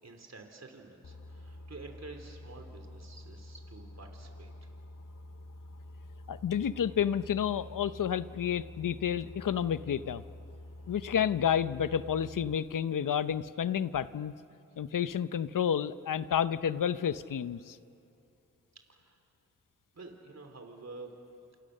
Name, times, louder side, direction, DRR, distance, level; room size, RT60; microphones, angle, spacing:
voice 1, 0.0-4.7 10.8-10.9 18.7-19.2 19.9-21.1, right 3 dB, 55° right, 4 dB, 3.4 m, -49 dB
Boat Water vehicle, 1.0-12.6, left 1 dB, 65° left, 1.9 m, -48 dB
voice 2, 6.3-10.2 10.9-14.3 14.8-17.8, left 8 dB, 90° left, 14 dB, 0.7 m, -30 dB
29.5 x 28.0 x 6.6 m, 2.7 s
cardioid pair, 50°, 31 cm